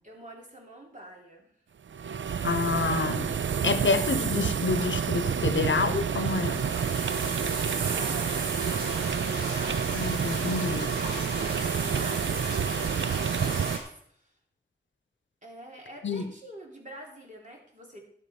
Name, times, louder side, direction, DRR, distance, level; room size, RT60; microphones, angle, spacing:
voice 1, 0.0-1.5 7.4-10.2 10.6-14.3 15.4-18.0, right 1 dB, 40° right, 3.4 m, -47 dB
sound 1, 1.9-13.8, right 7 dB, 85° right, 0.4 m, -29 dB
voice 2, 2.4-3.3 3.6-6.6 9.9-10.9 16.0-16.3, left 4 dB, 85° left, 0.8 m, -28 dB
sound 2, 5.5-13.8, equal, 60° right, 5.8 m, -38 dB
11.5 x 7.5 x 5.3 m
wide cardioid pair, 70°, 19 cm